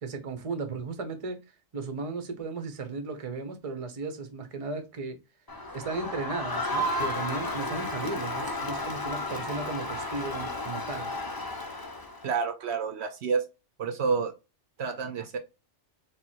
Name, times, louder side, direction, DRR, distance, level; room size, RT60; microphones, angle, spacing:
voice 1, 0.0-5.2 5.7-11.1, right 4 dB, 35° right, 0.7 m, -35 dB
Crowd, 5.5-12.3, left 1 dB, 25° left, 0.6 m, -33 dB
voice 2, 12.2-13.4 13.8-14.3 14.8-15.4, right 5 dB, 65° right, 0.9 m, -29 dB
3.5 x 3.0 x 4.3 m
omnidirectional pair, 1.3 m